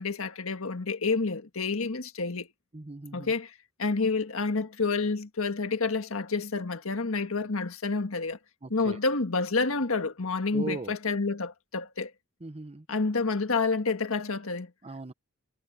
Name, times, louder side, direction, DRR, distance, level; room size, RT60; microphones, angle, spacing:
voice 1, 0.0-2.5 3.1-3.5 3.8-8.4 8.7-12.1 12.9-14.7, left 4 dB, 70° left, 1.6 m, -29 dB
voice 2, 2.7-3.3 8.6-9.0 10.5-10.9 12.4-12.8 14.8-15.1, right 3 dB, 30° right, 0.9 m, -38 dB
head